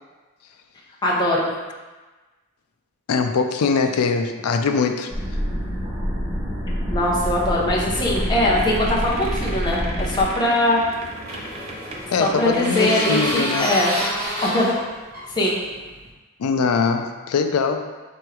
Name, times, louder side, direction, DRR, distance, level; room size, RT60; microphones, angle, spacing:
voice 1, 1.0-1.5 6.9-10.8 12.2-13.9 14.4-14.7 15.4-15.6, left 1 dB, 20° left, -5 dB, 0.7 m, -21 dB
voice 2, 3.1-5.1 12.1-13.7 16.4-17.9, left 5 dB, 80° left, 6 dB, 0.4 m, -22 dB
sound 1, 5.1-10.2, equal, 5° right, 1.1 m, -26 dB
sound 2, 7.8-13.4 13.7-13.8 14.0-14.2, right 2 dB, 30° right, 0.4 m, -36 dB
sound 3, 10.6-16.1, equal, 45° right, 0.9 m, -29 dB
3.5 x 3.0 x 4.7 m, 1.2 s
head